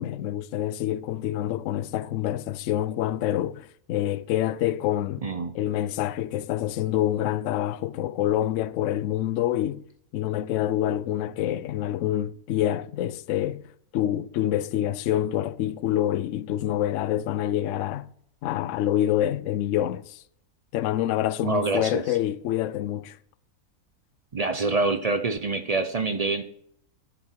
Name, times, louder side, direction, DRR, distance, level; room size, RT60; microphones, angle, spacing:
voice 1, 0.0-5.3 5.5-9.8 10.1-13.7 13.9-18.1 18.4-20.2 20.7-23.2, left 12 dB, 70° left, 0.8 m, -26 dB
voice 2, 5.2-5.5 21.4-22.2 24.3-26.4, right 3 dB, 50° right, 0.4 m, -26 dB
10.0 x 8.2 x 4.5 m
omnidirectional pair, 1.6 m